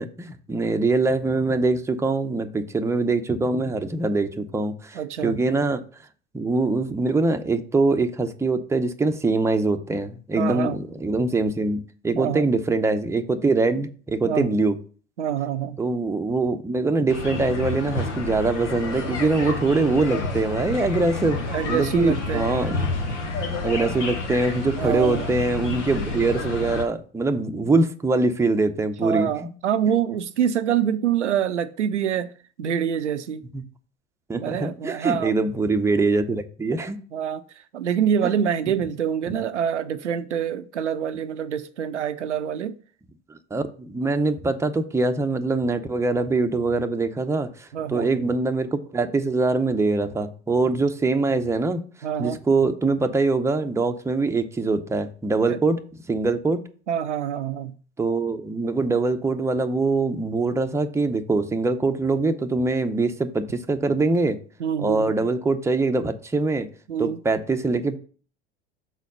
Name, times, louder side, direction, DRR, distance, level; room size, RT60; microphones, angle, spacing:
voice 1, 0.0-5.8 6.3-14.8 15.8-22.8 23.6-29.3 33.5-33.6 34.3-37.0 38.2-38.3 43.3-51.8 52.2-55.8 56.1-56.6 58.0-64.4 64.8-66.7 67.0-68.0, right 3 dB, 10° right, 0.7 m, -23 dB
voice 2, 4.9-5.4 10.4-10.8 12.1-12.5 14.2-14.5 15.2-15.8 21.5-22.5 23.8-23.9 24.8-25.3 27.5-27.7 29.0-32.3 32.6-33.4 34.3-35.5 36.8-42.8 47.7-48.1 52.0-52.4 55.5-55.6 56.9-57.7 64.6-65.3 66.9-67.2, right 9 dB, 90° right, 0.5 m, -26 dB
sound 1, 17.1-26.8, left 3 dB, 85° left, 1.4 m, -29 dB
6.4 x 4.2 x 5.3 m
hypercardioid pair, 80°, 35 cm